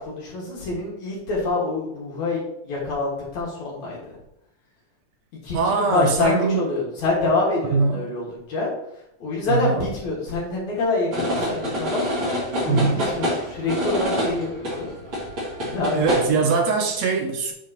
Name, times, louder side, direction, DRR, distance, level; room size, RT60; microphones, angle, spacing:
voice 1, 0.0-4.0 5.3-8.7 9.2-12.0 12.6-14.9 15.7-16.5, left 3 dB, 70° left, 3.1 m, -26 dB
voice 2, 5.5-6.6 7.6-8.0 9.5-9.9 12.7-13.0 15.9-17.5, right 5 dB, 70° right, 1.9 m, -22 dB
sound 1, 11.1-16.3, equal, 40° right, 3.1 m, -26 dB
7.5 x 7.2 x 3.0 m
omnidirectional pair, 3.4 m